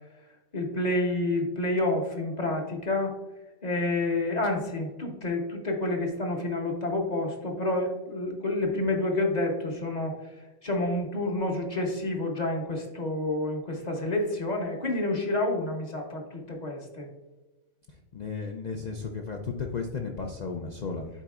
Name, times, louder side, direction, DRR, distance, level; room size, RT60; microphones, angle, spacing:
voice 1, 0.5-3.2 3.6-10.2 10.6-17.1, left 2 dB, 35° left, 2 dB, 0.9 m, -29 dB
voice 2, 17.9-21.1, left 4 dB, 75° left, 2 dB, 0.4 m, -34 dB
9.9 x 4.0 x 2.4 m, 1.1 s
omnidirectional pair, 1.4 m